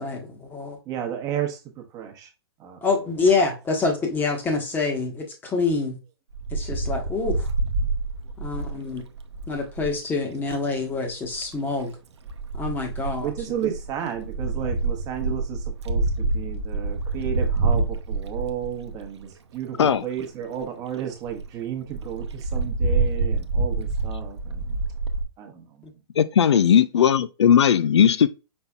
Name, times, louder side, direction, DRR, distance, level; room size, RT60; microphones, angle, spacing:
voice 1, 0.0-0.8 2.8-6.0 6.5-7.5 8.4-9.0 9.5-11.9 12.6-13.3, left 4 dB, 15° left, 1.1 m, -26 dB
voice 2, 0.9-2.3 2.6-3.2 13.2-24.8 25.4-25.7 26.5-26.6, right 10 dB, 25° right, 1.0 m, -33 dB
Wind, 6.3-10.0 11.1-11.5 12.3-19.2 19.8-19.9 20.2-20.3 20.6-20.7 21.0-21.1 21.3-21.5 21.9-25.2, right 3 dB, 80° right, 0.7 m, -27 dB
voice 3, 26.2-28.3, left 8 dB, 85° left, 0.4 m, -17 dB
5.4 x 4.0 x 2.3 m
hypercardioid pair, 135°, 14 cm